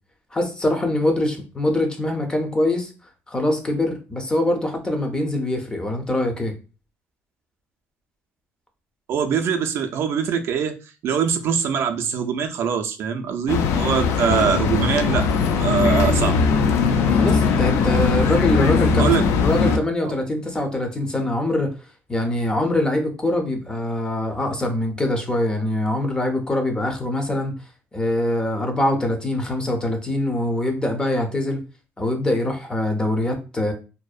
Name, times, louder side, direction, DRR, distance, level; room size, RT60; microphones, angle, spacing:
voice 1, 0.3-2.9 3.3-6.6 17.0-19.1 19.4-21.7 22.1-27.5 27.9-31.6 32.0-33.7, left 1 dB, 15° left, 0.5 m, -23 dB
voice 2, 9.1-10.7 11.0-15.2 15.6-16.4 19.0-19.2 20.0-20.1, right 7 dB, 60° right, 0.4 m, -23 dB
sound 1, 13.5-19.8, left 5 dB, 70° left, 0.3 m, -19 dB
2.6 x 2.0 x 2.3 m
cardioid pair, 125°, 5 cm